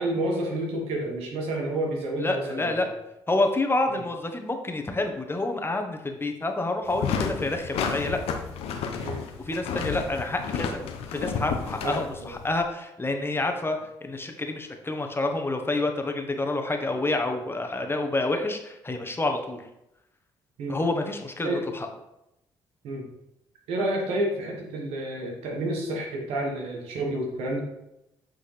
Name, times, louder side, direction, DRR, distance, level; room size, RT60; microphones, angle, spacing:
voice 1, 0.0-2.7 3.9-4.0 9.0-9.3 11.8-12.4 20.6-20.8 21.4-21.6 22.8-23.1 23.7-27.6, right 1 dB, 75° right, 0 dB, 1.4 m, -29 dB
voice 2, 2.2-2.9 3.3-8.2 9.5-10.8 11.1-19.6 20.7-21.9, left 2 dB, 25° left, 4 dB, 1.1 m, -28 dB
sound 1, 6.9-12.6, left 6 dB, 75° left, 0.7 m, -31 dB
8.3 x 3.8 x 3.3 m, 0.86 s
hypercardioid pair, 50°, 10 cm